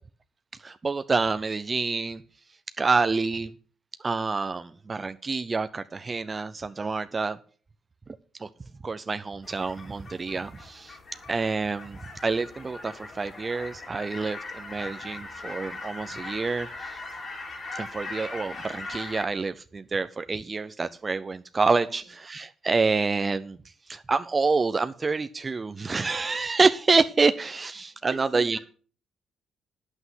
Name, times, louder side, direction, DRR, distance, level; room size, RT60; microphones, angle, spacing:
voice 1, 0.6-2.2 2.8-3.5 4.0-7.4 8.4-8.5 8.8-11.0 11.3-17.0 17.7-23.6 23.9-28.6, right 4 dB, 30° right, 10 dB, 0.5 m, -27 dB
sound 1, 9.4-19.2, left 3 dB, 45° left, 3.1 m, -40 dB
voice 2, 28.1-28.6, right 5 dB, 50° right, -4 dB, 2.2 m, -43 dB
9.6 x 8.1 x 5.6 m, 0.42 s
cardioid pair, 90°, 0 cm